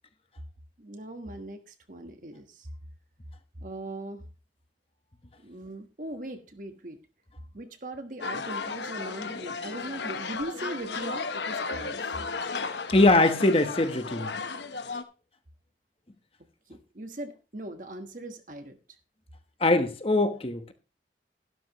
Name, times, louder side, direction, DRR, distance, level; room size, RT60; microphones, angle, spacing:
voice 1, 0.8-2.7 3.6-4.2 5.4-7.0 7.5-12.2 16.7-18.8, right 1 dB, 45° right, 1.4 m, -40 dB
sound 1, 8.2-15.0, left 4 dB, 80° left, 1.0 m, -34 dB
voice 2, 12.9-14.3 19.6-20.7, left 2 dB, 30° left, 1.1 m, -22 dB
12.5 x 12.0 x 3.0 m
head